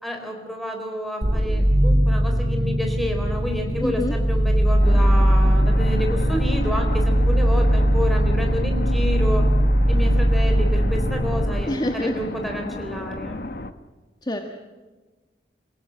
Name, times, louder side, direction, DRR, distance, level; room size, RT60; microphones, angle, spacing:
voice 1, 0.0-9.4 9.9-13.4, equal, ahead, 3 dB, 4.0 m, -29 dB
sound 1, 1.2-11.5, equal, 70° right, 4.0 m, -19 dB
voice 2, 3.8-4.1 11.7-12.1 14.2-14.4, left 1 dB, 25° left, 4 dB, 1.5 m, -25 dB
sound 2, 4.8-13.7, left 2 dB, 55° left, 1.2 m, -34 dB
28.5 x 17.0 x 7.7 m, 1.3 s
head